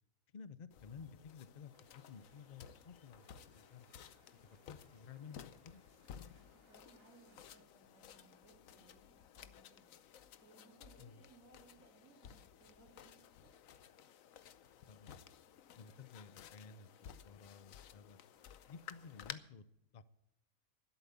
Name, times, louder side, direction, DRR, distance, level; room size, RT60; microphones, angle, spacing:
voice 1, 0.3-3.2 3.5-3.9 4.7-5.8 11.0-11.2 14.9-15.3 15.8-18.2 18.7-19.6 19.9-20.0, left 6 dB, 45° left, 15 dB, 0.7 m, -54 dB
sound 1, 0.7-19.3, left 9 dB, 75° left, 1.1 m, -56 dB
sound 2, 1.7-7.6, right 6 dB, 50° right, 1.0 m, -73 dB
voice 2, 6.5-9.9 10.4-13.7, right 3 dB, 75° right, -4 dB, 3.4 m, -65 dB
12.5 x 11.5 x 7.0 m, 0.81 s
omnidirectional pair, 1.4 m